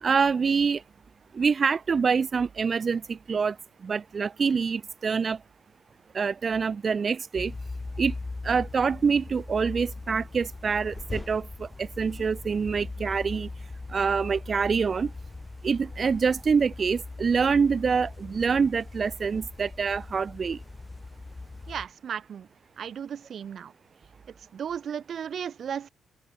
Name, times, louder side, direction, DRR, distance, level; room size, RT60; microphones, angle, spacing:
voice 1, 0.0-0.8 1.4-3.5 3.8-5.4 6.1-7.5 8.0-8.1 8.4-13.5 13.9-15.1 15.6-20.6, right 5 dB, 40° right, 0.6 m, -25 dB
sound 1, 7.3-21.9, left 3 dB, 20° left, 5.9 m, -40 dB
voice 2, 21.7-22.5 22.8-23.7 24.5-25.9, right 8 dB, 55° right, 1.7 m, -35 dB
open air
cardioid pair, 90°, 0 cm